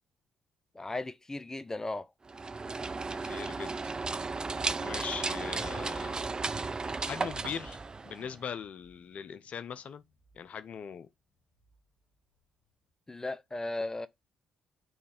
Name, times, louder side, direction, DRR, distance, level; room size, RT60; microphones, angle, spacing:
voice 1, 0.7-2.1 6.9-7.0 13.1-14.1, left 2 dB, 20° left, 0.7 m, -36 dB
sound 1, 2.3-8.4, right 3 dB, 30° right, 0.5 m, -35 dB
voice 2, 3.2-3.9 4.8-6.2 7.0-7.8 8.0-10.0 10.4-11.1, left 7 dB, 60° left, 0.6 m, -40 dB
sound 2, 7.4-12.9, right 3 dB, 75° right, 3.4 m, -58 dB
9.4 x 3.2 x 3.4 m
supercardioid pair, 55°, 3 cm